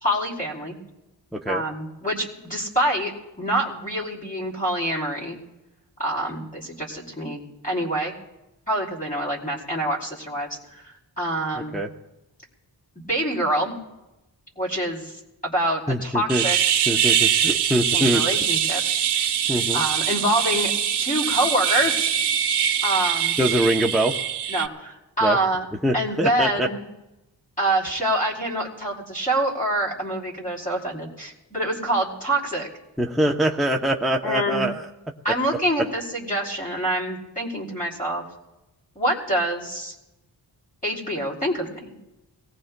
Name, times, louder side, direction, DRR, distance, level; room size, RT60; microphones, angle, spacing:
voice 1, 0.0-0.8 1.5-5.4 6.0-8.1 8.7-10.5 10.8-11.8 13.1-13.7 14.5-15.2 15.4-16.6 17.9-18.8 19.2-19.4 19.7-20.7 21.0-22.1 22.8-23.4 24.5-25.7 25.9-26.8 27.6-32.7 34.2-34.6 35.2-38.2 38.9-39.9 40.8-42.0, right 1 dB, 20° left, -4 dB, 3.2 m, -26 dB
voice 2, 1.3-1.6 11.5-11.9 15.9-16.4 16.9-18.2 19.5-19.8 23.4-24.1 25.2-25.4 25.8-26.7 33.0-34.9 35.8-35.9, right 1 dB, ahead, 1 dB, 0.6 m, -23 dB
sound 1, 16.3-24.7, right 9 dB, 65° right, 0.6 m, -23 dB
24.5 x 18.0 x 2.2 m, 0.97 s
wide cardioid pair, 125°, 43 cm